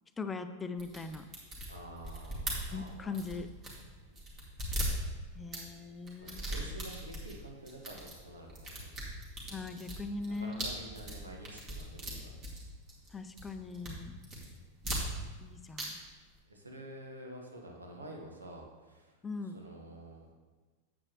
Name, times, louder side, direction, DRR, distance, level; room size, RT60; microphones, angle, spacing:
voice 1, 0.2-1.2 2.7-3.5 5.3-6.5 9.5-10.7 13.1-14.2 15.4-16.0 19.2-19.6, left 4 dB, 15° left, 9 dB, 0.5 m, -40 dB
sound 1, 0.8-3.9 4.2-5.6 6.1-7.3 7.7-8.2 8.5-13.1 13.4-13.9 14.2-15.5 15.7-16.1, right 1 dB, 30° right, 2.3 m, -39 dB
voice 2, 1.7-3.3 4.0-4.3 6.2-8.9 9.5-9.6 10.2-12.4 16.5-19.2 19.4-20.3, right 1 dB, 75° right, 1 dB, 1.4 m, -49 dB
8.8 x 7.9 x 3.1 m, 1.3 s
figure-of-eight pair, 90°, 0 cm